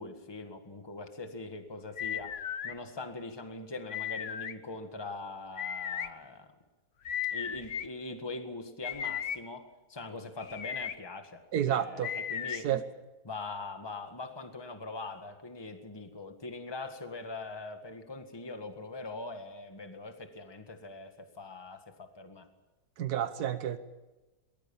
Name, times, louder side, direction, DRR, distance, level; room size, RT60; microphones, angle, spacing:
voice 1, 0.0-6.5 7.3-12.7 13.2-22.5, left 3 dB, 15° left, 6 dB, 1.7 m, -42 dB
sound 1, 2.0-2.7 3.9-4.5 5.6-6.1 7.0-7.9 8.8-9.4 10.4-10.9 12.0-12.6, left 9 dB, 55° left, 1.2 m, -35 dB
voice 2, 11.5-12.1 12.6-12.8 23.0-23.8, right 10 dB, 90° right, 11 dB, 1.5 m, -30 dB
22.5 x 20.5 x 7.2 m, 1.1 s
omnidirectional pair, 1.6 m